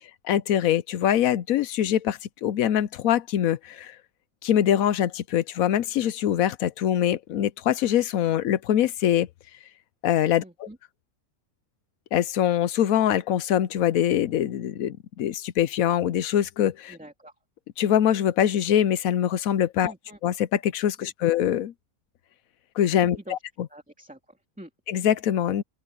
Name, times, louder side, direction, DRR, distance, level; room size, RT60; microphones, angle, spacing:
voice 1, 0.2-3.9 4.4-9.3 10.0-10.7 12.1-17.0 17.8-19.9 20.2-21.7 22.8-23.4 24.9-25.6, left 10 dB, 70° left, 1.1 m, -23 dB
voice 2, 10.4-10.8 16.9-17.3 19.8-20.2 21.0-21.3 23.0-23.4 23.7-24.7, right 1 dB, 5° right, 2.4 m, -45 dB
open air
omnidirectional pair, 1.6 m